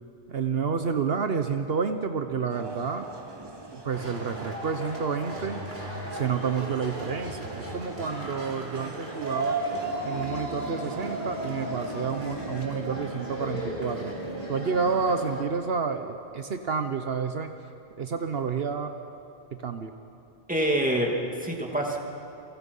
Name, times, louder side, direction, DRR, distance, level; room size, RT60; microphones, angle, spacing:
voice 1, 0.3-3.1 3.7-5.6 6.1-9.6 10.0-14.1 14.5-17.5 18.0-18.9 19.6-19.9, right 5 dB, 70° right, 7 dB, 1.2 m, -29 dB
sound 1, 2.5-12.7, right 2 dB, 25° right, 1.0 m, -44 dB
sound 2, 3.9-15.4, right 1 dB, 50° right, 3.6 m, -35 dB
sound 3, 9.7-15.0, left 2 dB, 35° left, 2.4 m, -42 dB
voice 2, 20.5-22.0, right 1 dB, 10° right, 0 dB, 2.7 m, -26 dB
29.5 x 24.0 x 5.5 m, 2.7 s
omnidirectional pair, 1.1 m